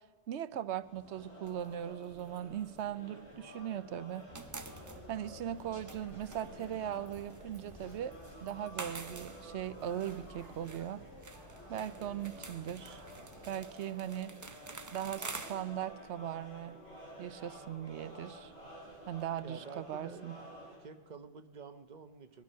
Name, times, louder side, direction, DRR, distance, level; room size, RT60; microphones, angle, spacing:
voice 1, 0.3-4.2 5.1-8.1 8.4-11.0 11.7-13.0 13.5-14.3 14.9-16.8 17.2-18.5 19.1-20.4, right 10 dB, 85° right, 15 dB, 1.0 m, -39 dB
sound 1, 0.8-20.8, right 1 dB, 65° left, 7.4 m, -52 dB
sound 2, 1.4-3.7 4.0-19.4, right 3 dB, 25° right, 0.5 m, -50 dB
sound 3, 4.3-13.5, left 1 dB, 85° left, 3.8 m, -54 dB
voice 2, 19.4-20.5 20.8-22.4, right 5 dB, 45° right, 10 dB, 1.0 m, -49 dB
20.5 x 12.5 x 5.6 m, 1.4 s
omnidirectional pair, 1.1 m